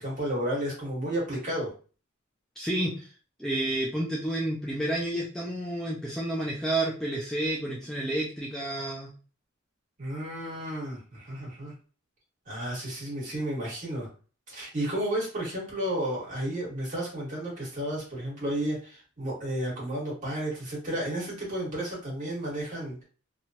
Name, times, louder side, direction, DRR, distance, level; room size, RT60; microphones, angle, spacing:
voice 1, 0.0-1.7 10.0-11.7 12.5-14.1 14.5-23.0, right 1 dB, 40° right, -5 dB, 1.5 m, -32 dB
voice 2, 2.6-3.1 3.4-9.1, right 1 dB, 5° left, -4 dB, 0.4 m, -30 dB
3.0 x 2.3 x 2.7 m, 0.38 s
head